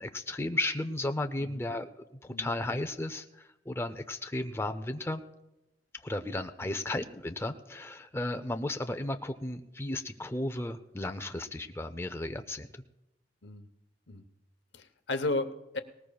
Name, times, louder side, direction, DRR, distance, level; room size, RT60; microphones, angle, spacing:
voice 1, 0.0-1.9 2.2-5.2 6.0-12.8, left 1 dB, 15° left, 8 dB, 0.5 m, -34 dB
voice 2, 14.7-15.8, left 2 dB, 85° left, 9 dB, 0.8 m, -34 dB
19.0 x 19.0 x 2.3 m, 0.92 s
head